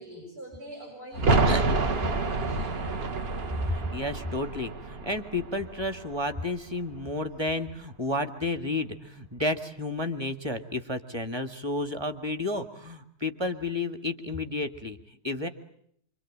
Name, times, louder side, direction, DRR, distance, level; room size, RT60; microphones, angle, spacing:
voice 1, 0.0-2.8, right 1 dB, 85° right, 0 dB, 7.4 m, -43 dB
sound 1, 1.1-6.7 7.0-7.1, right 3 dB, 45° right, 1.4 m, -28 dB
voice 2, 1.3-1.7 3.7-15.5, left 2 dB, 15° right, 8 dB, 1.8 m, -31 dB
26.0 x 25.0 x 8.7 m, 0.68 s
omnidirectional pair, 1.6 m